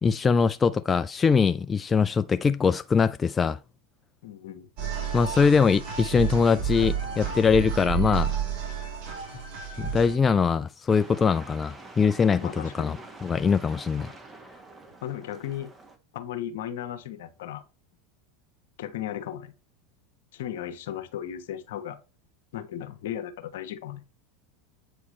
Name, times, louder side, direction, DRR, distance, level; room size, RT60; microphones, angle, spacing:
voice 1, 0.0-3.6 5.1-8.4 9.8-13.0 13.2-14.1, left 5 dB, 25° left, 0.3 m, -22 dB
voice 2, 4.2-4.7 12.4-13.0 15.0-15.7 16.1-17.6 18.8-19.5 20.3-22.0 22.5-24.0, left 11 dB, 70° left, 1.0 m, -36 dB
sound 1, 4.8-10.1, right 7 dB, 55° right, 3.1 m, -31 dB
sound 2, 10.9-16.0, right 3 dB, 20° right, 1.5 m, -46 dB
8.4 x 4.6 x 3.2 m
hypercardioid pair, 95°, 0 cm